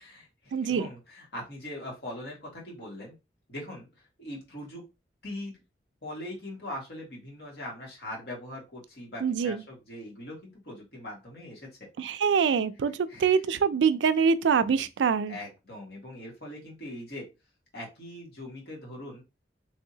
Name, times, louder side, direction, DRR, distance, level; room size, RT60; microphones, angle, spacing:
voice 1, 0.0-3.1 3.5-3.9 4.2-4.9 5.2-5.6 6.0-11.7 12.1-12.2 13.1-13.4 15.3-17.3 17.7-19.2, left 1 dB, 65° left, 1.7 m, -41 dB
voice 2, 0.5-0.9 9.2-9.6 12.0-15.4, right 6 dB, 90° right, 0.4 m, -25 dB
3.5 x 2.7 x 2.7 m
head